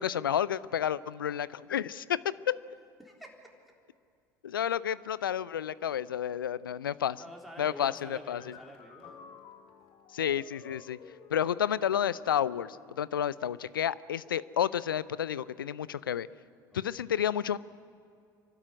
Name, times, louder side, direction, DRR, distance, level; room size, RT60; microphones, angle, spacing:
voice 1, 0.0-2.6 4.4-7.2 7.6-8.4 10.1-11.0 11.3-16.3 16.7-17.6, left 9 dB, 85° left, 19 dB, 0.5 m, -30 dB
voice 2, 3.0-3.3 7.2-9.1 16.7-16.9, equal, ahead, 0 dB, 3.9 m, -48 dB
sound 1, 7.7-12.9, left 7 dB, 50° left, 1.9 m, -53 dB
27.5 x 12.5 x 9.7 m, 2.4 s
figure-of-eight pair, 70°, 11 cm